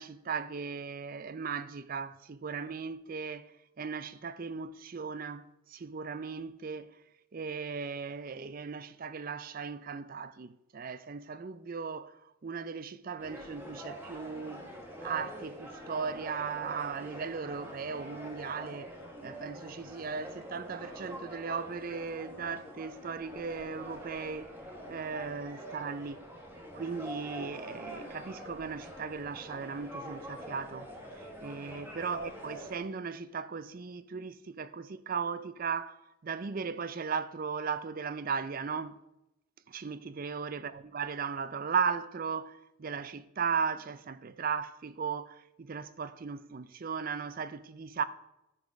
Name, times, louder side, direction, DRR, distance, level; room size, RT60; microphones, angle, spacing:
voice 1, 0.0-3.5 3.8-7.0 7.3-14.6 15.0-18.9 19.2-24.5 24.9-26.2 26.7-30.9 31.2-39.0 39.7-48.0, right 5 dB, 40° right, 0.4 m, -37 dB
sound 1, 13.2-32.8, equal, 10° right, 1.4 m, -45 dB
13.0 x 5.2 x 4.8 m
head